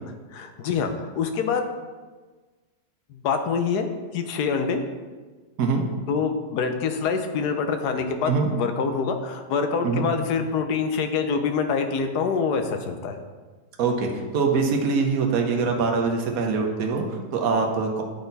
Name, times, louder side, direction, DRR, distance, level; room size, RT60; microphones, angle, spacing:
voice 1, 0.3-1.7 3.2-3.9 4.1-4.8 6.1-13.2, left 5 dB, 90° left, 6 dB, 1.3 m, -25 dB
voice 2, 13.8-18.0, right 4 dB, 65° right, 2 dB, 1.3 m, -23 dB
10.0 x 4.2 x 4.0 m, 1.4 s
omnidirectional pair, 1.6 m